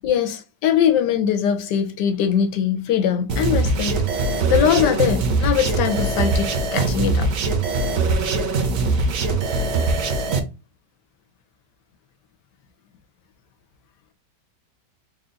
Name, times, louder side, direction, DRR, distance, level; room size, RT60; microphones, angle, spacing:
voice 1, 0.0-4.0 4.5-7.3, left 8 dB, 85° left, 1.3 m, -21 dB
sound 1, 3.3-10.4, right 3 dB, 60° right, 1.1 m, -22 dB
3.6 x 2.4 x 3.8 m
omnidirectional pair, 1.8 m